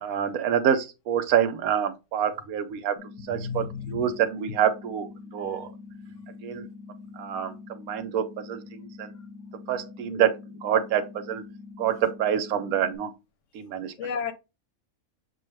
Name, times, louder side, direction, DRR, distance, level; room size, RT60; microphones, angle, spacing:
voice 1, 0.0-3.0 3.3-5.1 5.3-5.7 6.4-6.7 7.2-9.1 9.7-10.3 10.6-11.4 11.8-13.1 13.5-13.9, right 9 dB, 80° right, 1.1 m, -26 dB
sound 1, 3.0-13.0, left 4 dB, 85° left, 1.1 m, -45 dB
voice 2, 3.3-4.0 5.5-5.7 14.0-14.3, left 6 dB, 70° left, 0.9 m, -33 dB
6.4 x 2.3 x 3.2 m
omnidirectional pair, 1.5 m